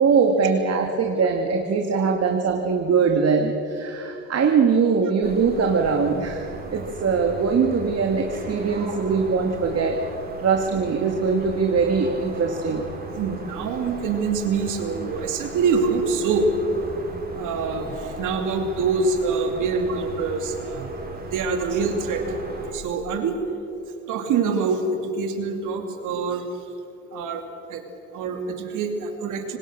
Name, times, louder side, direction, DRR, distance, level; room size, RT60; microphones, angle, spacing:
voice 1, 0.0-10.0 10.4-12.9, right 5 dB, 55° right, 3 dB, 2.0 m, -22 dB
sound 1, 5.2-22.7, right 2 dB, 30° right, 5.5 m, -37 dB
voice 2, 13.1-16.5 17.3-20.9 21.3-22.2 22.7-23.4 24.1-26.5 27.1-27.4 27.7-27.8 28.1-29.6, right 4 dB, 90° right, 5 dB, 2.7 m, -25 dB
25.5 x 19.5 x 6.6 m, 2.8 s
cardioid pair, 90°, 30 cm